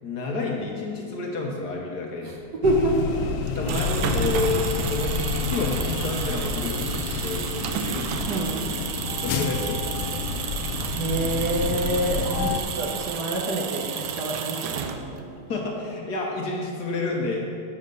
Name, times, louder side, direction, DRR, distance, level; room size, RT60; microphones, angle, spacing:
voice 1, 0.0-2.3 3.5-8.4 9.1-10.4 15.5-17.5, left 3 dB, 60° left, -1 dB, 1.4 m, -30 dB
sound 1, 2.6-12.6, left 5 dB, 80° left, 1.5 m, -29 dB
voice 2, 2.6-3.1 8.3-8.6 11.0-15.3, right 1 dB, 60° right, -1 dB, 1.4 m, -26 dB
sound 2, 3.5-15.3, right 7 dB, 80° right, 1.4 m, -32 dB
8.6 x 6.5 x 5.3 m, 2.4 s
omnidirectional pair, 2.3 m